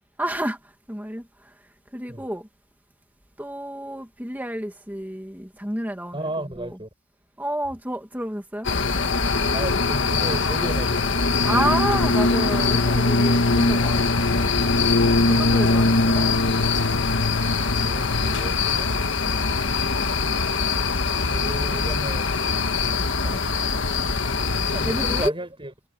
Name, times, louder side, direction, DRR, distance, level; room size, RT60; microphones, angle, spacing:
voice 1, 0.2-1.6 1.9-2.5 3.4-6.3 6.6-6.8 7.4-8.7 11.5-14.5 15.3-16.3 23.3-23.4 24.8-25.3, right 1 dB, 10° right, 2.1 m, -30 dB
voice 2, 6.1-6.9 9.5-11.6 17.7-18.9 21.2-22.3 23.2-23.3 24.3-25.7, right 1 dB, 25° right, 6.2 m, -34 dB
sound 1, 8.6-25.3, left 3 dB, 55° left, 1.6 m, -22 dB
head